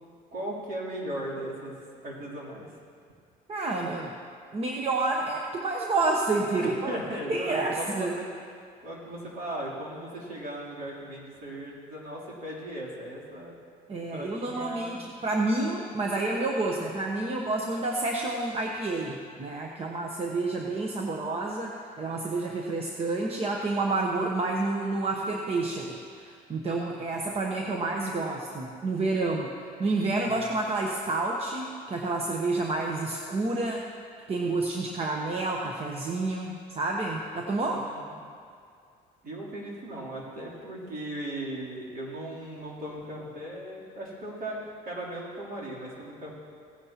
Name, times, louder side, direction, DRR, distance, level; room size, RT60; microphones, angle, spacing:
voice 1, 0.3-1.7 2.0-2.8 6.6-8.3 8.8-13.5 14.1-15.0 30.2-30.5 37.7-38.2 39.2-46.3, right 1 dB, 55° right, -5 dB, 3.3 m, -37 dB
voice 2, 3.5-4.1 4.5-7.0 7.3-8.1 13.9-21.7 22.0-29.5 29.8-33.8 34.3-37.8, right 2 dB, 35° right, 0 dB, 0.9 m, -29 dB
17.0 x 9.5 x 2.9 m, 2.2 s
cardioid pair, 110°, 17 cm